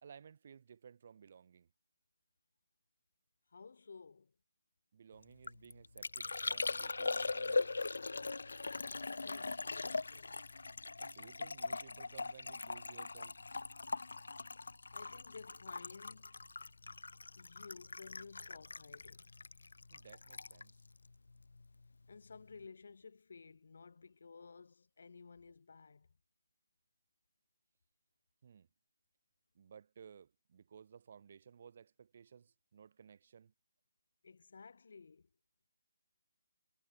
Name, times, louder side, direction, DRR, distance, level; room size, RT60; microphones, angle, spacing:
voice 1, 0.0-1.7 4.9-7.7 11.0-13.4 19.9-20.7 28.4-28.7 29.5-33.5, right 7 dB, 45° right, 2.5 m, -58 dB
voice 2, 3.5-4.3 9.0-10.4 14.9-16.4 17.4-19.3 22.1-26.1 34.2-35.3, left 5 dB, 60° left, 3.7 m, -55 dB
Liquid, 5.2-21.9 22.1-22.6, left 3 dB, 80° left, 1.4 m, -41 dB
hypercardioid pair, 165°, 0 cm